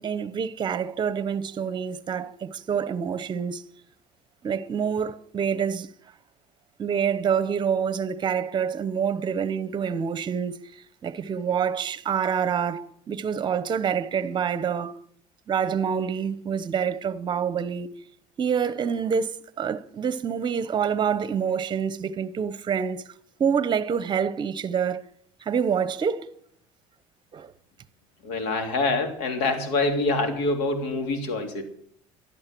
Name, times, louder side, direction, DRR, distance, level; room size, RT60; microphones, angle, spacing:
voice 1, 0.0-3.6 4.4-5.9 6.8-10.6 11.0-15.0 15.5-17.9 18.4-23.0 23.4-25.0 25.4-26.3 27.3-27.5, right 7 dB, 35° right, 1.0 m, -27 dB
voice 2, 28.2-31.6, left 2 dB, 85° left, 3.1 m, -25 dB
12.5 x 11.5 x 6.2 m
cardioid pair, 120°, 14 cm